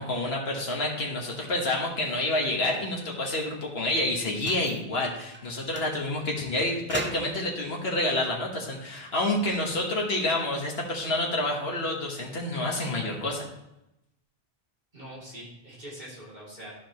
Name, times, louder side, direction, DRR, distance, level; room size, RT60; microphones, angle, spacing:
voice 1, 0.0-13.5, left 1 dB, 75° left, -1 dB, 1.6 m, -28 dB
sound 1, 4.3-4.8 5.3-5.5 5.7-5.9 6.9-7.5 8.8-9.8, right 1 dB, 15° right, 0.5 m, -38 dB
voice 2, 14.9-16.8, right 1 dB, 45° right, -7 dB, 3.1 m, -43 dB
12.5 x 5.0 x 3.1 m, 0.88 s
omnidirectional pair, 1.0 m